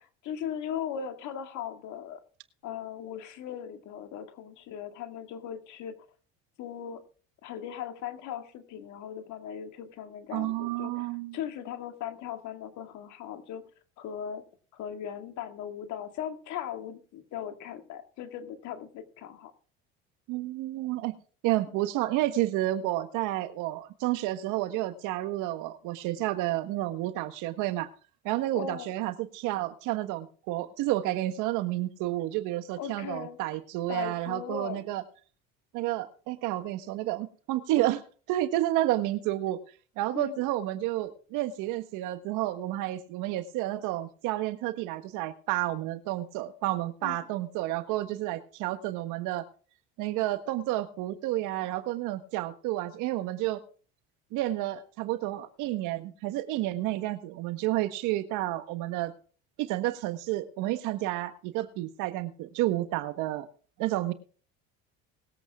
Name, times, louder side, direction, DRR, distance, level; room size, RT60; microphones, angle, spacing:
voice 1, 0.0-2.2 2.6-6.0 6.6-7.0 7.4-13.6 14.0-14.4 14.7-19.5 28.6-28.9 32.8-33.4 33.9-34.8 40.1-40.4 47.0-47.2, left 9 dB, 65° left, 7 dB, 2.1 m, -38 dB
voice 2, 10.3-11.4 20.3-21.2 21.4-27.9 28.2-35.0 35.7-38.0 38.3-39.6 40.0-49.4 50.0-53.6 54.3-59.1 59.6-63.5 63.8-64.1, right 15 dB, 70° right, 10 dB, 1.5 m, -30 dB
20.5 x 8.2 x 3.6 m, 0.40 s
supercardioid pair, 95°, 32 cm